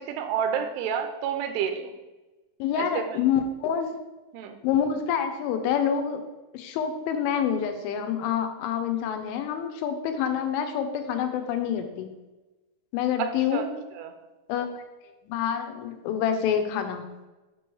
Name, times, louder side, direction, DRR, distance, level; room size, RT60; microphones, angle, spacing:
voice 1, 0.0-1.9 2.8-3.2 4.3-4.6 13.2-13.7 14.0-14.1, right 8 dB, 85° right, 6 dB, 3.1 m, -29 dB
voice 2, 2.6-3.9 4.6-6.2 6.5-12.1 12.9-13.7 14.5-14.8 15.2-17.0, left 8 dB, 85° left, 7 dB, 3.1 m, -27 dB
7.6 x 3.1 x 6.1 m, 1.1 s
omnidirectional pair, 5.4 m